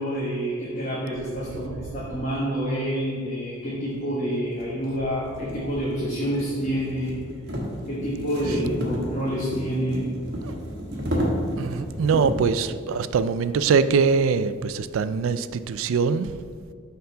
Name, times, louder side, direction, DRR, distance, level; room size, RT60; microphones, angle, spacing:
voice 1, 0.0-7.2 7.9-10.1, equal, 35° left, 1.2 m, -28 dB
sound 1, 3.7-3.8 4.5-12.5, equal, 50° right, 1.3 m, -31 dB
voice 2, 11.6-16.4, right 5 dB, 75° right, 0.3 m, -23 dB
6.6 x 4.0 x 5.5 m
head